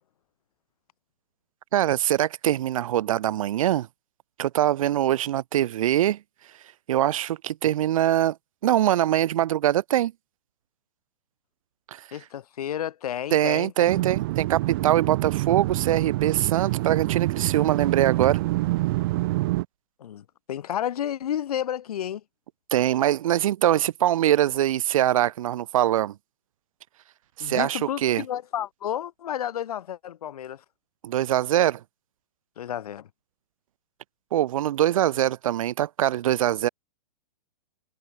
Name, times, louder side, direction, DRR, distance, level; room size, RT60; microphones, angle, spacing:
voice 1, 1.7-3.9 4.4-6.2 6.9-8.4 8.6-10.1 11.9-12.0 13.3-18.4 22.7-26.1 27.4-28.2 31.0-31.8 34.3-36.7, right 12 dB, 55° right, 1.6 m, -23 dB
voice 2, 12.1-14.0 20.0-22.2 27.4-30.6 32.6-33.1, left 10 dB, 65° left, 5.0 m, -31 dB
sound 1, 13.9-19.7, right 19 dB, 35° right, 0.7 m, -26 dB
hypercardioid pair, 160°, 20 cm